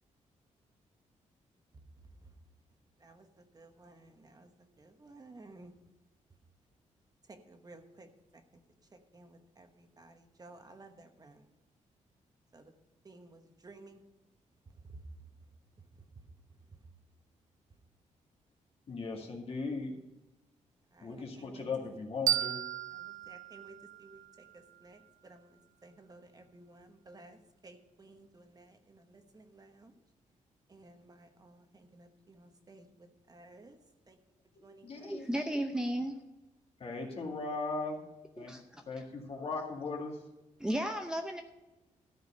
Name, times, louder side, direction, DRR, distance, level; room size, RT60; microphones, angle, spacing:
voice 1, 3.5-4.5 4.8-5.7 7.5-8.1 9.1-11.4 12.5-12.6 13.0-14.0 20.9-21.1 23.0-24.2 24.5-27.4 27.6-29.9 30.7-32.8 33.3-33.7 34.1-34.2 34.6-34.9, right 2 dB, 30° right, 1.2 m, -55 dB
voice 2, 18.9-19.9 21.0-22.6 34.5-35.7 36.8-38.0 38.4-38.6 38.9-40.3, left 3 dB, 50° left, 2.2 m, -38 dB
sound 1, 22.3-25.1, right 11 dB, 85° right, 0.4 m, -35 dB
voice 3, 35.0-36.1 38.4-38.6 40.6-41.4, right 1 dB, 5° right, 0.7 m, -34 dB
13.0 x 4.8 x 8.7 m
cardioid pair, 100°, 13 cm